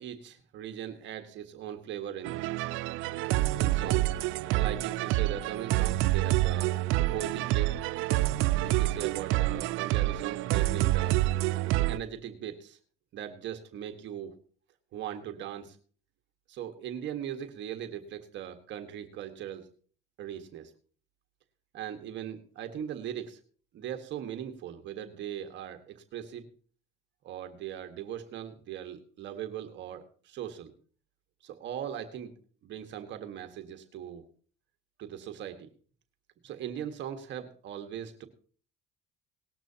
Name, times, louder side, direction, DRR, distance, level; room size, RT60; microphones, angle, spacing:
voice 1, 0.0-2.4 3.6-4.1 4.5-6.8 7.1-7.9 8.6-11.2 11.9-12.8 13.1-14.3 14.9-15.8 16.5-19.7 20.2-20.7 21.7-23.4 23.7-26.5 27.2-30.7 31.4-32.3 32.6-34.2 35.0-35.7 36.4-38.3, right 10 dB, 65° right, 6 dB, 1.6 m, -39 dB
sound 1, 2.2-12.0, right 16 dB, 80° right, 0.6 m, -27 dB
19.0 x 12.5 x 2.9 m, 0.43 s
supercardioid pair, 85°, 20 cm